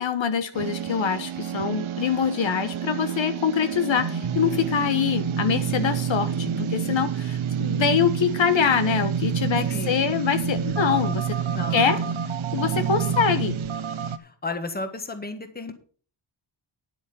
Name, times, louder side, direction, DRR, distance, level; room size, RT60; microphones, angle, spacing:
voice 1, 0.0-11.4 11.7-12.0 12.5-13.6, left 7 dB, 70° left, 10 dB, 1.3 m, -24 dB
sound 1, 0.5-14.2, right 7 dB, 80° right, 1.0 m, -28 dB
voice 2, 9.7-10.2 11.5-11.9 12.8-12.9 14.2-15.7, left 3 dB, 20° left, 8 dB, 1.5 m, -33 dB
10.0 x 8.4 x 5.6 m, 0.43 s
wide cardioid pair, 135°, 48 cm